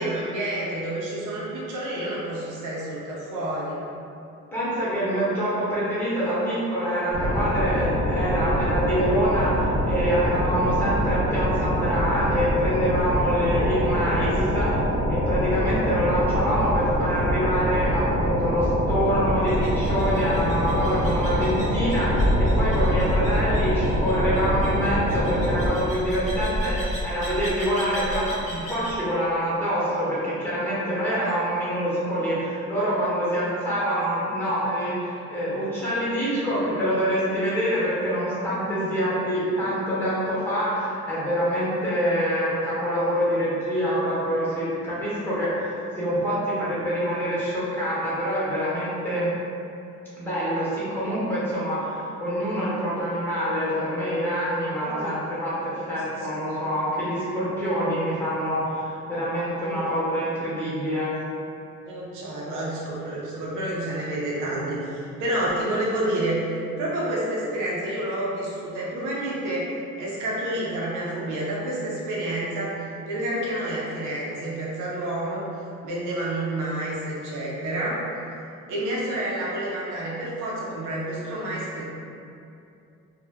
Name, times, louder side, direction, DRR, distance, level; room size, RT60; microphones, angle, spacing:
voice 1, 0.0-3.8 19.6-19.8 31.2-31.3 38.8-39.0 54.7-55.1 56.2-56.3 59.7-60.0 61.8-66.4 66.8-69.7 70.0-72.7 73.1-75.5 75.8-78.0 78.7-81.8, right 1 dB, 90° right, -6 dB, 0.7 m, -29 dB
voice 2, 4.5-49.3 50.2-61.1, equal, 5° left, -9 dB, 1.0 m, -26 dB
sound 1, 7.1-25.7, equal, 60° right, 0.9 m, -25 dB
sound 2, 19.5-29.0, equal, 25° left, 0.8 m, -30 dB
2.1 x 2.1 x 3.4 m, 2.6 s
cardioid pair, 90°, 30 cm